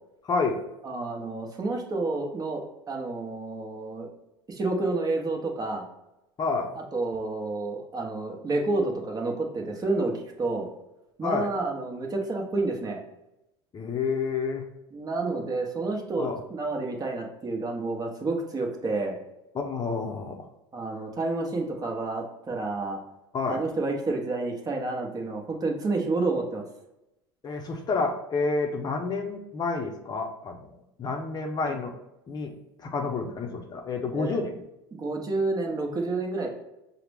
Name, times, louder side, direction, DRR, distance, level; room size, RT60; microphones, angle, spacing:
voice 1, 0.2-0.6 6.4-6.7 11.2-11.5 13.7-14.7 16.2-16.4 19.5-20.4 23.3-23.6 27.4-30.7 31.0-31.9 32.3-32.5 32.8-34.6, left 4 dB, 30° left, 2 dB, 0.6 m, -29 dB
voice 2, 0.8-4.1 4.5-5.8 6.7-10.7 11.2-13.0 14.9-19.2 20.7-23.0 23.5-26.6 31.6-31.8 34.1-34.4 34.9-36.5, right 3 dB, 30° right, 1 dB, 0.9 m, -29 dB
5.6 x 2.1 x 3.4 m, 0.90 s
hypercardioid pair, 85°, 13 cm